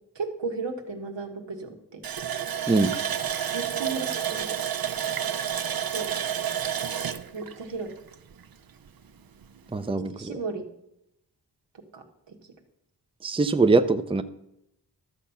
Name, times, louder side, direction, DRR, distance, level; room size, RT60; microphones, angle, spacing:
voice 1, 0.1-2.1 3.5-4.5 5.8-6.1 7.3-7.9 10.2-10.7 11.7-12.4, right 4 dB, 85° right, 3 dB, 1.7 m, -35 dB
Water tap faucet, 2.0-8.5 8.9-9.0 9.4-9.6, right 9 dB, 55° right, 0.7 m, -30 dB
voice 2, 9.7-10.3 13.2-14.2, right 3 dB, 15° right, 10 dB, 0.6 m, -22 dB
12.5 x 7.3 x 5.6 m, 0.81 s
wide cardioid pair, 75°, 42 cm